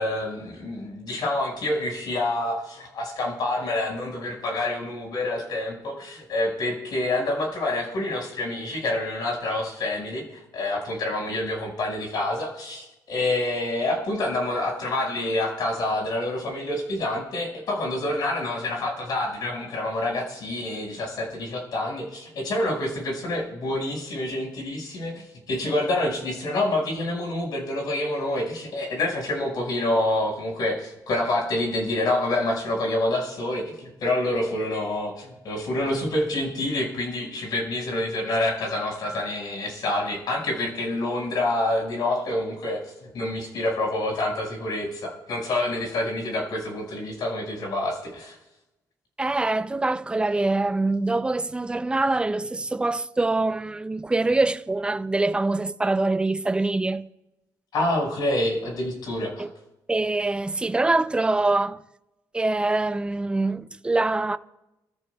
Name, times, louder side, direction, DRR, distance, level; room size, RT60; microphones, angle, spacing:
voice 1, 0.0-48.4 57.7-59.4, left 1 dB, 65° left, 5.5 m, -27 dB
voice 2, 49.2-57.1 59.4-59.5 59.9-61.8 62.3-64.4, right 2 dB, 15° right, 0.5 m, -24 dB
28.5 x 13.5 x 2.3 m
cardioid pair, 120°, 8 cm